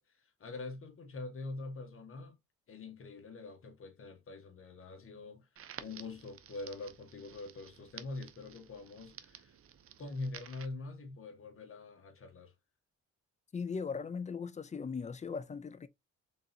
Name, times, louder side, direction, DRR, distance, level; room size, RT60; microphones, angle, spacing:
voice 1, 0.0-2.3 2.7-5.5 5.8-9.5 10.0-12.5, left 3 dB, 45° left, 1.4 m, -44 dB
Crackle, 5.6-10.7, right 9 dB, 50° right, 0.7 m, -53 dB
voice 2, 13.5-15.9, left 5 dB, 25° left, 0.4 m, -38 dB
3.9 x 3.7 x 2.8 m
cardioid pair, 90°, 30 cm